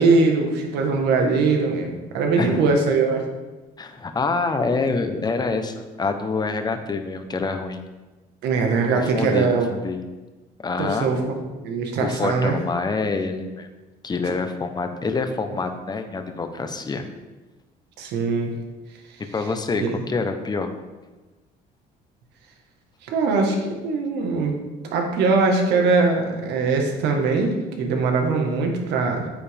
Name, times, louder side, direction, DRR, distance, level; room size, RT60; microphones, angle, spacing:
voice 1, 0.0-3.2 8.4-9.6 10.8-11.4 11.6-12.5 18.0-18.5 19.8-20.0 23.0-23.6 23.8-24.6 24.9-29.3, right 4 dB, 85° right, 2 dB, 1.6 m, -21 dB
voice 2, 3.8-7.8 8.9-9.5 9.7-10.1 10.6-11.1 12.0-13.7 14.0-17.1 19.3-20.7, left 4 dB, 25° left, 7 dB, 1.0 m, -26 dB
9.0 x 8.3 x 3.6 m, 1.2 s
cardioid pair, 110°, 17 cm